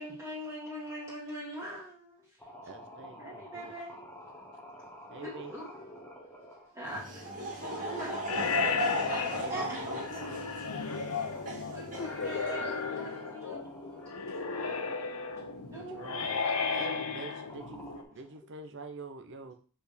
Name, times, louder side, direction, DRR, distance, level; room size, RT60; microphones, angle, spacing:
voice 1, 0.0-2.3 3.2-4.1 5.2-6.0 6.5-7.1 7.6-8.2 9.5-9.9 11.7-13.7 14.1-14.4 15.6-16.5 17.4-17.5, right 1 dB, 15° right, -7 dB, 1.7 m, -42 dB
sound 1, 2.4-9.3 10.2-15.8 16.3-16.6 17.4-18.4, equal, 10° left, 1.3 m, -50 dB
voice 2, 2.6-3.7 5.1-5.6 9.3-10.1 15.7-17.8 18.1-19.5, right 3 dB, 55° right, 6 dB, 0.8 m, -46 dB
Laughter / Crowd, 6.8-12.6, equal, 40° right, 1.8 m, -36 dB
sound 2, 8.3-18.0, left 5 dB, 75° left, 0.9 m, -35 dB
voice 3, 10.2-13.8 14.3-14.8, left 7 dB, 60° left, 7 dB, 0.4 m, -41 dB
4.9 x 4.4 x 5.2 m, 0.40 s
head